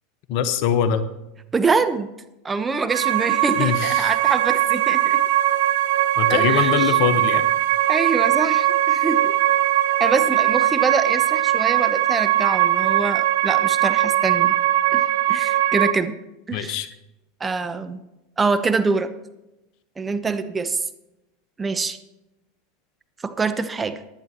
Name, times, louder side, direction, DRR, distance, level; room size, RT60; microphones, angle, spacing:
voice 1, 0.3-1.0 3.6-4.1 6.2-7.4 16.5-16.9, left 8 dB, 60° left, 10 dB, 1.2 m, -22 dB
voice 2, 1.5-2.1 2.4-5.2 6.3-7.0 7.9-9.3 10.0-14.5 14.9-15.0 15.3-16.1 16.5-16.8 17.4-18.0 18.4-19.1 20.0-20.8 21.6-22.0 23.2-24.0, right 4 dB, 20° right, 10 dB, 1.0 m, -24 dB
sound 1, 2.9-15.9, right 13 dB, 70° right, 0.6 m, -20 dB
16.5 x 11.0 x 3.0 m, 0.95 s
hypercardioid pair, 90°, 0 cm